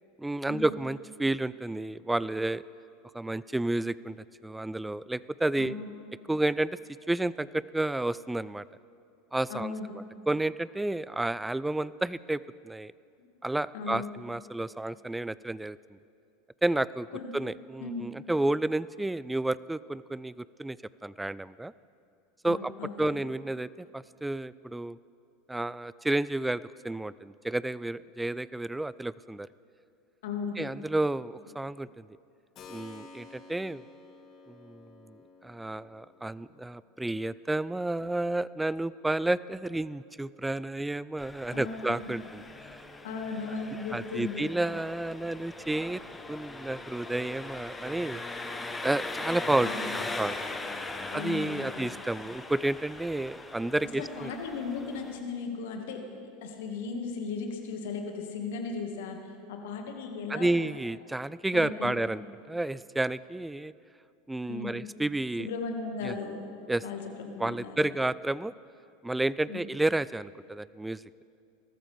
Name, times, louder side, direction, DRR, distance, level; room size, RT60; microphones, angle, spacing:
voice 1, 0.2-2.6 3.1-4.2 4.4-5.7 6.3-6.8 7.1-8.6 9.3-9.7 10.3-12.9 13.4-15.8 16.6-17.1 17.3-20.8 21.0-21.7 22.4-22.7 23.0-25.0 25.5-29.5 30.6-32.1 32.7-33.8 34.5-42.4 43.9-46.0 46.3-48.2 48.8-50.4 51.1-54.3 60.3-62.2 62.5-63.7 64.3-65.5 66.0-66.1 66.7-66.8 67.4-68.5 69.0-71.0, right 2 dB, 10° right, 19 dB, 0.3 m, -31 dB
voice 2, 5.6-5.9 9.5-9.9 13.2-13.3 13.7-14.2 17.1-17.3 17.8-18.2 22.4-23.2 30.2-30.7 41.5-42.2 43.0-44.5 49.6-50.0 51.1-51.9 54.0-56.0 56.4-59.2 59.5-60.6 61.5-62.0 64.5-64.8 65.4-66.5 66.8-68.0 69.5-69.6, left 4 dB, 65° left, 3 dB, 1.8 m, -37 dB
Keyboard (musical), 32.5-41.2, left 3 dB, 40° left, 2.2 m, -54 dB
Engine, 41.2-55.2, left 2 dB, 15° left, 1.1 m, -40 dB
22.0 x 13.5 x 3.4 m, 2.6 s
hypercardioid pair, 85°, 0 cm